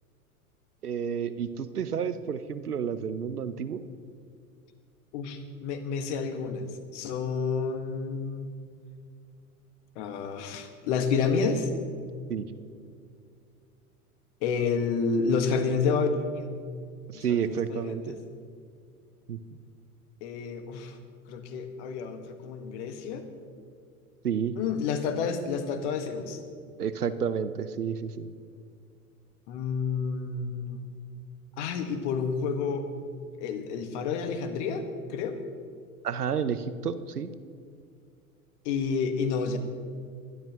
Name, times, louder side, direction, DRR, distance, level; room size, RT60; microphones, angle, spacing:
voice 1, 0.8-3.8 12.3-12.5 17.1-18.2 19.3-19.4 24.2-24.6 26.8-28.3 36.0-37.3, right 7 dB, 85° right, 13 dB, 0.8 m, -30 dB
voice 2, 5.1-8.5 9.9-11.7 14.4-16.5 17.1-18.2 20.2-21.0 21.3-23.2 24.6-26.4 29.5-30.9 31.6-32.9 33.4-34.8 35.1-35.4 38.6-39.6, left 5 dB, 50° left, 8 dB, 1.6 m, -29 dB
22.0 x 12.0 x 3.0 m, 2.3 s
figure-of-eight pair, 90°, 44 cm